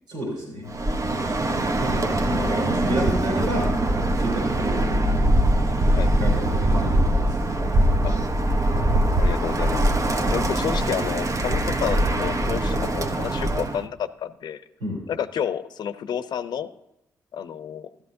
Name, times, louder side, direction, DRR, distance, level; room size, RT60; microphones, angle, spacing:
voice 1, 0.1-0.7 1.8-3.7 4.2-5.0 6.2-7.4 10.2-10.4 14.8-15.0, right 1 dB, 90° right, -5 dB, 4.4 m, -30 dB
Bird, 0.7-13.8, right 1 dB, 45° right, 1.1 m, -22 dB
voice 2, 9.2-9.9 10.3-14.6 15.1-16.7 17.3-17.9, left 8 dB, 65° left, 12 dB, 0.7 m, -30 dB
14.0 x 12.5 x 2.7 m, 0.88 s
hypercardioid pair, 45°, 8 cm